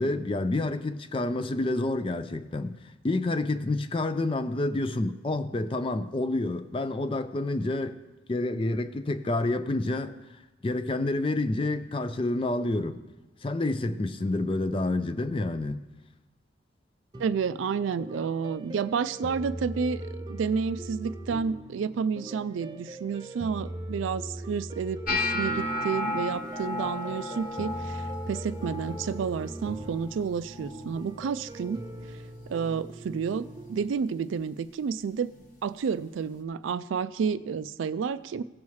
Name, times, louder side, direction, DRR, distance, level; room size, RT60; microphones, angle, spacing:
voice 1, 0.0-2.8 3.0-8.0 8.3-10.2 10.6-13.0 13.4-15.8, left 2 dB, 25° left, 0.4 m, -28 dB
sound 1, 17.1-33.8, right 1 dB, 20° right, 0.6 m, -41 dB
voice 2, 17.2-31.9 32.5-35.3 35.6-38.4, right 6 dB, 80° right, 0.3 m, -30 dB
sound 2, 25.1-31.2 31.4-31.9 32.3-32.8 33.5-33.7 35.4-35.5, left 2 dB, 45° left, 1.1 m, -34 dB
16.5 x 7.0 x 3.2 m
head